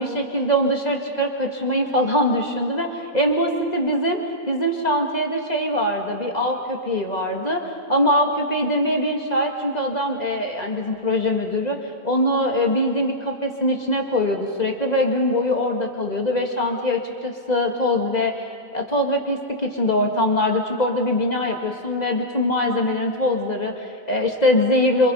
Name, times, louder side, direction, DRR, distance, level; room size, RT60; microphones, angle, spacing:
voice 1, 0.0-4.2 4.5-7.6 7.9-11.8 12.0-18.4 18.7-25.1, left 1 dB, 20° left, 1 dB, 1.4 m, -22 dB
27.0 x 26.5 x 5.6 m, 2.2 s
omnidirectional pair, 3.3 m